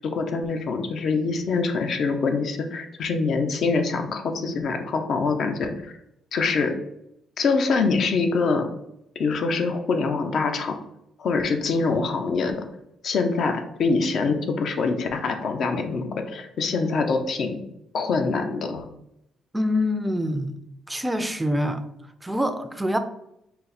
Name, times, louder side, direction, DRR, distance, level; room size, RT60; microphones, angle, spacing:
voice 1, 0.0-5.9 6.3-6.7 7.4-8.7 9.2-10.8 11.2-12.6 13.0-17.6 17.9-18.8, left 4 dB, 60° left, 6 dB, 0.6 m, -24 dB
voice 2, 19.5-20.6 20.9-21.8 22.2-23.0, left 1 dB, 10° right, 8 dB, 0.4 m, -25 dB
4.0 x 2.1 x 4.0 m, 0.81 s
cardioid pair, 90°, 0 cm